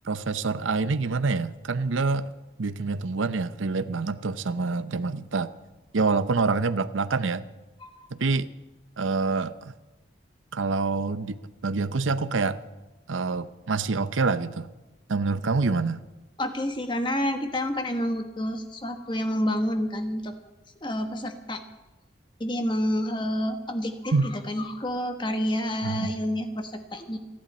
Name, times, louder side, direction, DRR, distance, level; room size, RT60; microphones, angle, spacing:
voice 1, 0.0-2.3 2.6-5.5 5.9-7.4 8.1-8.5 9.0-9.7 10.5-12.6 13.1-14.7 15.1-16.0 24.1-24.3 25.8-26.1, right 4 dB, 90° right, 13 dB, 0.7 m, -26 dB
voice 2, 16.4-20.3 20.8-21.6 22.4-27.2, equal, 25° left, 6 dB, 1.3 m, -29 dB
29.5 x 11.0 x 4.3 m, 1.0 s
head